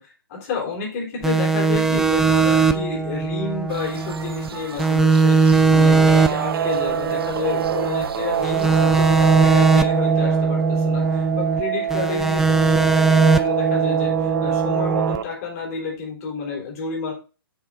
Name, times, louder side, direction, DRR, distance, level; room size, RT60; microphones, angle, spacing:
voice 1, 0.0-17.1, left 5 dB, 40° left, -1 dB, 3.8 m, -30 dB
sound 1, 1.2-4.5 4.8-8.0 8.4-11.6 11.9-15.2, right 4 dB, 5° right, 0.3 m, -19 dB
sound 2, 3.7-9.4, right 6 dB, 80° right, 0.9 m, -38 dB
Guitar, 5.8-15.2, right 10 dB, 55° right, 0.6 m, -25 dB
7.2 x 5.9 x 3.7 m, 0.33 s
hypercardioid pair, 145°, 12 cm